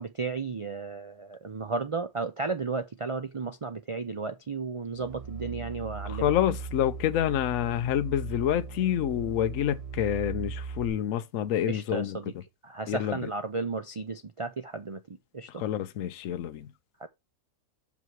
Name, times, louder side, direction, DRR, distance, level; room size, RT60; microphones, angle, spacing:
voice 1, 0.0-6.2 11.7-12.3 12.6-15.6 17.0-17.1, right 4 dB, 60° right, 0.3 m, -34 dB
sound 1, 5.0-10.9, right 6 dB, 25° right, 2.8 m, -38 dB
voice 2, 6.1-12.2 12.9-13.2 15.6-16.7, left 11 dB, 70° left, 1.0 m, -28 dB
6.2 x 5.5 x 4.6 m
omnidirectional pair, 1.5 m